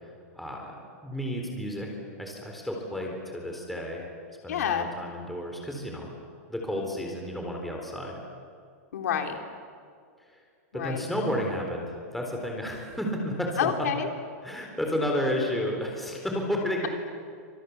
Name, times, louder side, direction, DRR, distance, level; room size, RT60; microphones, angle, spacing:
voice 1, 0.3-0.7 1.0-1.9 2.2-4.1 4.4-6.1 6.5-8.1 10.3-10.4 10.7-13.7 14.4-16.9, equal, ahead, 0 dB, 3.8 m, -31 dB
voice 2, 4.5-4.9 8.9-9.4 10.7-11.1 13.6-14.1, left 8 dB, 85° left, 4 dB, 3.6 m, -28 dB
28.5 x 26.0 x 7.3 m, 2.2 s
supercardioid pair, 165°, 8 cm